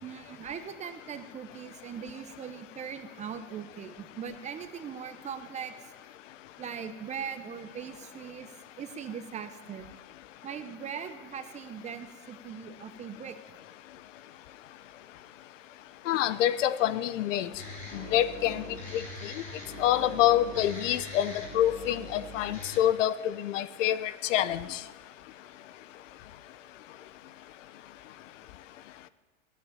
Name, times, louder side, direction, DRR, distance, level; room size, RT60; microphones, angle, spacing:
voice 1, 0.0-5.9 6.6-9.9 10.4-13.4 21.9-22.0, right 7 dB, 20° right, 9 dB, 0.8 m, -40 dB
voice 2, 16.1-17.5 17.9-18.6 18.9-19.3 19.8-24.8, left 12 dB, 70° left, 16 dB, 0.8 m, -27 dB
sound 1, 17.6-22.8, left 1 dB, 20° left, 4.0 m, -42 dB
15.0 x 9.9 x 7.3 m, 1.3 s
supercardioid pair, 145°, 39 cm